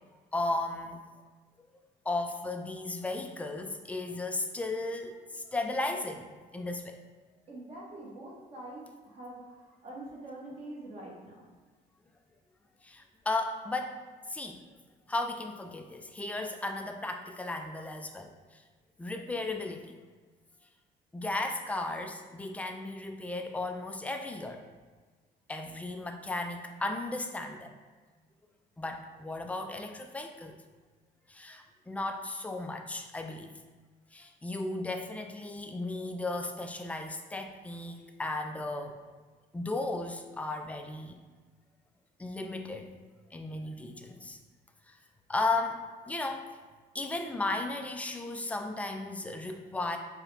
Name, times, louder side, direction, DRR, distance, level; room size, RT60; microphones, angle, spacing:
voice 1, 0.3-1.0 2.1-7.0 12.8-14.0 14.3-14.6 15.1-18.6 19.0-19.9 21.1-24.6 25.5-27.7 28.8-30.6 31.3-33.5 34.1-39.0 39.5-41.2 42.2-42.9 43.3-44.4 44.9-45.0 45.3-46.5 46.9-50.0, left 2 dB, 10° left, 5 dB, 0.3 m, -35 dB
voice 2, 7.5-11.5, right 1 dB, 35° right, -4 dB, 1.1 m, -45 dB
4.6 x 2.2 x 3.3 m, 1.4 s
cardioid pair, 110°, 17 cm